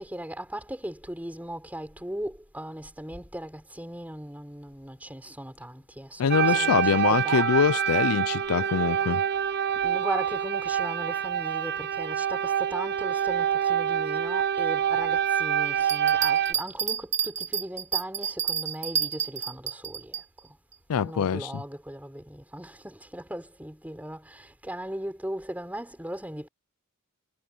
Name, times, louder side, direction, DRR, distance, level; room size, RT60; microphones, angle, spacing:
voice 1, 0.0-7.6 9.8-20.6 20.9-26.5, right 1 dB, 5° right, 5.3 m, -38 dB
voice 2, 6.2-9.2 20.9-21.5, left 7 dB, 80° left, 0.4 m, -24 dB
sound 1, 6.3-16.5, right 9 dB, 50° right, 0.7 m, -26 dB
sound 2, 7.4-9.9, left 5 dB, 15° left, 2.4 m, -43 dB
Bell, 15.8-20.2 20.7-20.8, right 8 dB, 35° right, 1.4 m, -29 dB
head